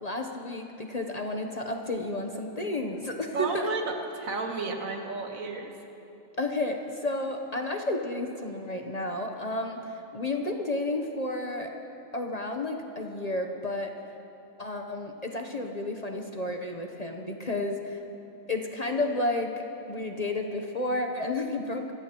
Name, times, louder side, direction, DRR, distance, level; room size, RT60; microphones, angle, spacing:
voice 1, 0.0-3.7 6.4-11.7 12.1-13.9 14.6-18.0 18.5-21.9, left 2 dB, 35° left, 3 dB, 0.8 m, -31 dB
voice 2, 3.3-5.7, right 3 dB, 80° right, 3 dB, 1.7 m, -32 dB
25.0 x 15.0 x 2.9 m, 2.9 s
omnidirectional pair, 1.4 m